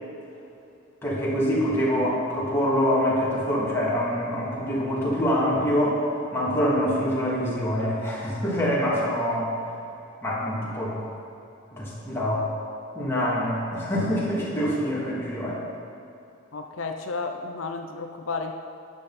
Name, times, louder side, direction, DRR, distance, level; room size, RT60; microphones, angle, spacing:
voice 1, 1.0-6.0 6.3-9.5 10.2-11.0 11.7-12.5 12.9-15.6, equal, 10° left, -8 dB, 3.2 m, -25 dB
voice 2, 16.5-18.5, left 4 dB, 85° left, 4 dB, 0.7 m, -32 dB
13.0 x 10.0 x 4.3 m, 2.8 s
head